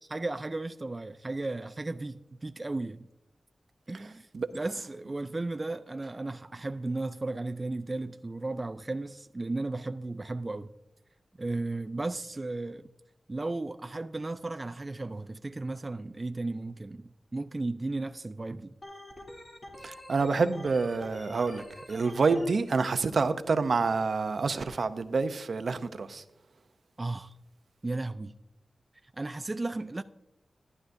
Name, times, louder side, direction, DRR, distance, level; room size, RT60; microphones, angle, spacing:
voice 1, 0.0-3.1 3.9-10.7 11.4-12.9 13.3-18.7 27.0-27.3 27.8-28.4 29.1-30.0, right 2 dB, 30° right, 0.3 m, -35 dB
Organ, 18.8-22.5, left 1 dB, 35° left, 2.7 m, -46 dB
voice 2, 19.8-21.6 21.9-26.2, right 4 dB, 65° right, 0.6 m, -27 dB
14.0 x 11.0 x 2.6 m
wide cardioid pair, 75°, 0 cm